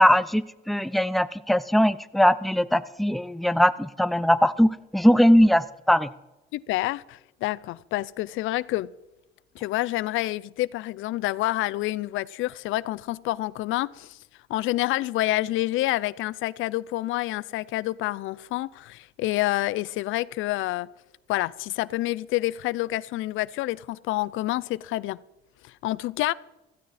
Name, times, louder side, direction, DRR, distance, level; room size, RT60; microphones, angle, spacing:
voice 1, 0.0-6.1, equal, ahead, 0.6 m, -20 dB
voice 2, 6.5-8.9 9.6-14.2 14.5-20.9 21.3-25.2 25.6-26.3, left 17 dB, 90° left, 0.5 m, -28 dB
15.5 x 15.0 x 4.2 m
cardioid pair, 90°, 20 cm